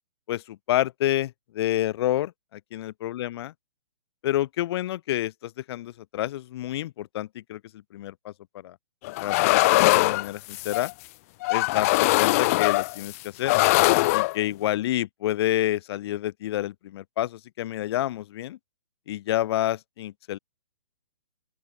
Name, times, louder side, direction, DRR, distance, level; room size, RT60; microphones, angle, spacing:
voice 1, 0.3-3.5 4.2-7.6 7.9-8.3 8.6-8.7 9.2-10.9 11.5-13.6 14.1-18.6 19.1-20.4, left 13 dB, 45° left, 3.1 m, -29 dB
sound 1, 9.0-10.9 11.4-13.1 13.5-14.4, left 21 dB, 25° left, 0.4 m, -21 dB
open air
hypercardioid pair, 135°, 18 cm